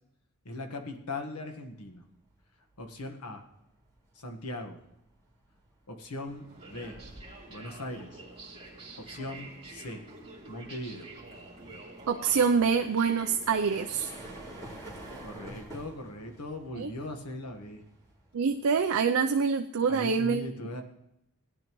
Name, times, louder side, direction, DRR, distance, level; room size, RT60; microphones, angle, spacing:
voice 1, 0.4-2.0 2.8-3.4 4.1-4.8 5.9-7.0 7.5-8.2 9.0-10.0 10.5-11.1 15.2-17.8 19.9-20.8, left 1 dB, 85° left, 5 dB, 1.4 m, -39 dB
sound 1, 2.0-2.3 2.7-19.4, right 1 dB, 15° left, 2.7 m, -51 dB
sound 2, 6.3-14.9, right 2 dB, 25° right, 2.5 m, -47 dB
voice 2, 12.1-14.1 16.8-16.9 18.3-20.5, right 5 dB, 65° right, 5 dB, 0.5 m, -26 dB
17.0 x 10.5 x 3.1 m, 0.83 s
head